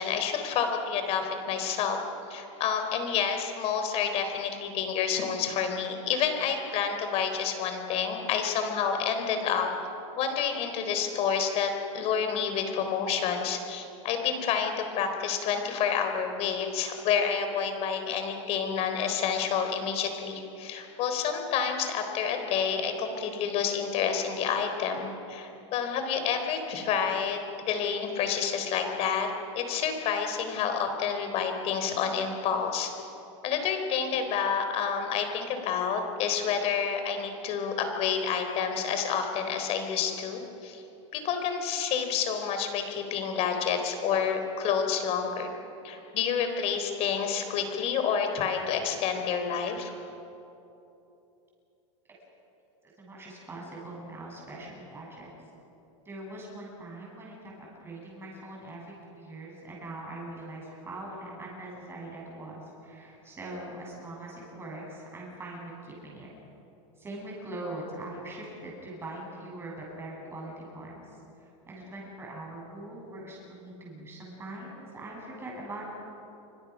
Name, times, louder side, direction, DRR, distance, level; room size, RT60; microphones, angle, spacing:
voice 1, 0.0-2.0 2.3-9.7 10.2-29.3 29.6-32.9 33.4-40.8 41.1-45.5 45.8-49.9, left 7 dB, 40° left, 6 dB, 3.9 m, -29 dB
voice 2, 53.0-55.3 56.0-57.5 57.8-66.3 67.0-75.8, right 2 dB, 15° right, -2 dB, 8.0 m, -42 dB
27.0 x 24.5 x 6.3 m, 2.9 s
supercardioid pair, 145°, 16 cm